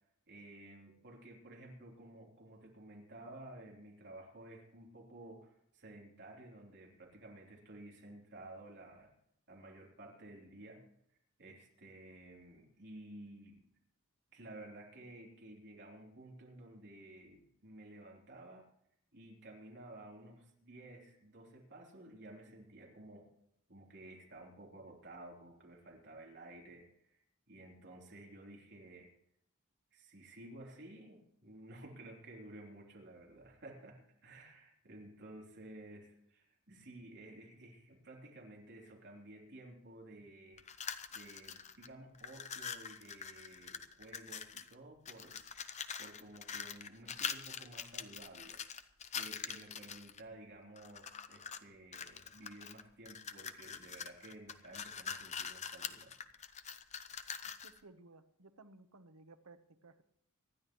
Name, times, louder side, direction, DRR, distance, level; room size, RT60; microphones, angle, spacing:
voice 1, 0.3-9.1 9.5-10.8 11.4-13.6 14.3-18.7 19.1-23.3 23.7-29.1 29.9-40.6 41.1-45.4 46.0-48.6 49.1-56.1, right 1 dB, 55° right, -1 dB, 3.4 m, -53 dB
sound 1, 40.6-41.9 42.1-44.7 45.0-50.2 50.8-51.6 51.9-57.8, left 7 dB, 35° left, 0.7 m, -44 dB
voice 2, 57.6-60.0, right 3 dB, 80° right, 9 dB, 1.0 m, -58 dB
25.5 x 11.0 x 3.1 m, 0.74 s
head